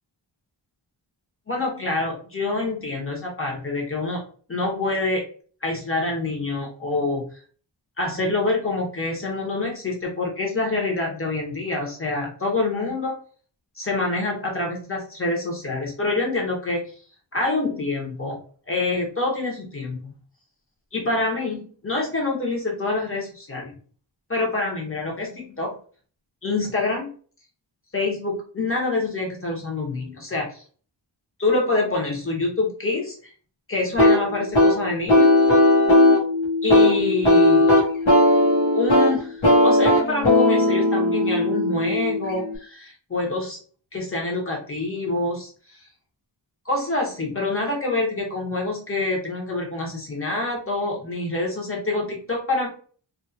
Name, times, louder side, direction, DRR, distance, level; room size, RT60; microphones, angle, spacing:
voice 1, 1.5-4.2 4.5-5.2 5.6-7.3 8.0-13.1 13.7-16.9 17.3-18.4 18.7-20.1 20.9-23.7 24.3-25.7 26.4-27.1 27.9-30.6 31.4-33.3 33.7-35.3 36.6-37.7 38.7-43.6 43.9-45.8 46.6-52.7, left 2 dB, 30° left, -2 dB, 1.2 m, -26 dB
sound 1, 34.0-42.6, left 1 dB, 80° left, 1.3 m, -17 dB
3.0 x 2.7 x 2.8 m, 0.43 s
wide cardioid pair, 110°, 46 cm